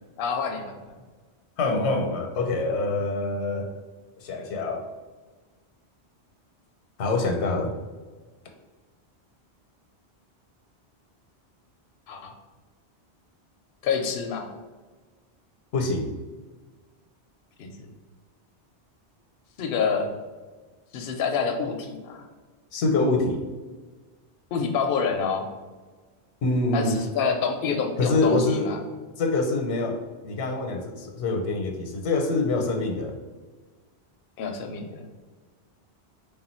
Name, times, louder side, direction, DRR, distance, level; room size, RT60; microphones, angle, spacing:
voice 1, 0.2-0.8 12.1-12.3 13.8-14.5 17.6-17.9 19.6-20.1 20.9-22.3 24.5-25.5 26.7-28.8 34.4-35.0, left 5 dB, 65° left, 3 dB, 0.7 m, -27 dB
voice 2, 1.6-3.7 4.2-4.9 7.0-7.7 15.7-16.1 22.7-23.4 26.4-27.0 28.0-28.7 29.2-33.1, left 2 dB, 90° left, 3 dB, 0.9 m, -25 dB
3.4 x 2.4 x 4.2 m, 1.3 s
omnidirectional pair, 1.1 m